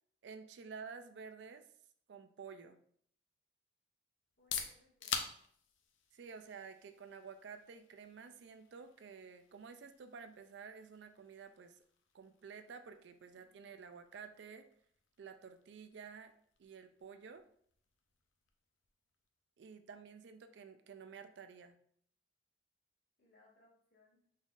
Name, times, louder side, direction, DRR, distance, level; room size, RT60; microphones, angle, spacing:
voice 1, 0.2-1.7 2.1-2.8 6.1-11.8 12.1-14.7 15.2-16.3 16.6-17.4 19.6-21.8, right 5 dB, 65° right, 9 dB, 0.3 m, -51 dB
sound 1, 4.2-19.9, left 7 dB, 80° left, 0.5 m, -50 dB
voice 2, 4.4-5.4 13.4-13.7 23.2-24.2, left 2 dB, 55° left, -6 dB, 1.7 m, -69 dB
3.9 x 3.8 x 2.4 m, 0.62 s
head